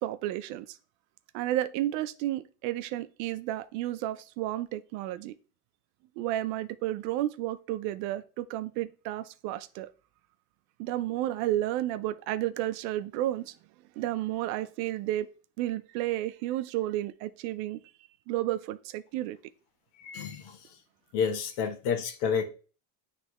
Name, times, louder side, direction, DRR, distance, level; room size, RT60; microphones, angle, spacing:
voice 1, 0.0-0.8 1.3-5.3 6.2-9.9 10.8-13.5 14.0-15.3 15.6-17.8 18.3-19.4, right 14 dB, 75° right, 0.6 m, -32 dB
voice 2, 20.0-20.6 21.1-22.4, left 6 dB, 55° left, 1.1 m, -29 dB
9.7 x 3.3 x 3.0 m
cardioid pair, 160°, 49 cm